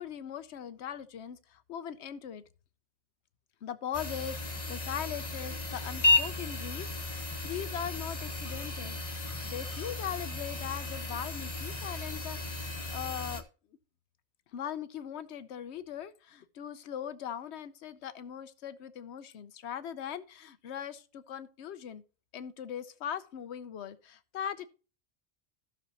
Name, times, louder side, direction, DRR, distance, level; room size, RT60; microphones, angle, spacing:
voice 1, 0.0-2.4 3.6-9.0 9.4-13.4 14.5-22.0 22.3-24.7, left 9 dB, 90° left, 1.0 m, -40 dB
sound 1, 3.9-13.4, left 2 dB, 35° left, 1.1 m, -33 dB
15.0 x 6.3 x 2.9 m
omnidirectional pair, 1.1 m